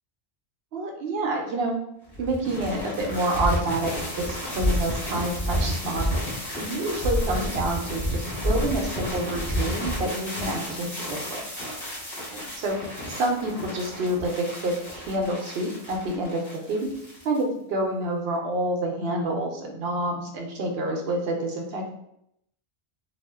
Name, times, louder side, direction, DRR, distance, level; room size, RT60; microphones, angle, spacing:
voice 1, 0.7-1.8 2.2-11.4 12.3-12.8 13.0-16.4 16.7-16.8 17.2-21.9, right 1 dB, 70° right, 1 dB, 0.8 m, -28 dB
sound 1, 2.1-17.4, equal, 25° left, 0.9 m, -30 dB
2.4 x 2.1 x 3.4 m, 0.76 s
omnidirectional pair, 1.1 m